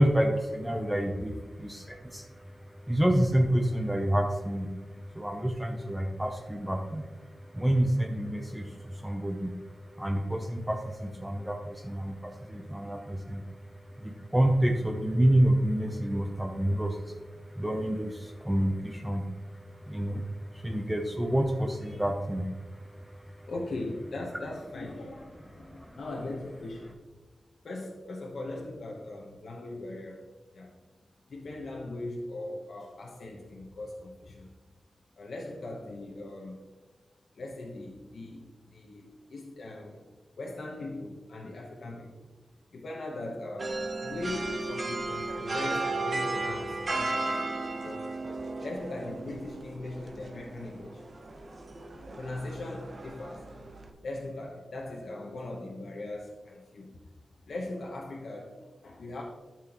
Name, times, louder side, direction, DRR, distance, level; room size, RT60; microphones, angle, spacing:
voice 1, 0.0-23.5 25.4-26.0, right 1 dB, 5° right, 2 dB, 0.7 m, -29 dB
voice 2, 23.5-26.9 27.6-30.3 30.5-30.8 31.3-34.5 35.2-36.6 37.3-40.1 40.4-42.3 42.7-47.4 47.8-48.1 48.6-51.0 52.2-53.5 54.0-57.0 57.5-59.2, left 2 dB, 65° left, -2 dB, 1.0 m, -39 dB
sound 1, 43.6-53.9, right 2 dB, 40° right, 1.0 m, -35 dB
12.5 x 6.0 x 3.0 m, 1.3 s
wide cardioid pair, 125°, 0 cm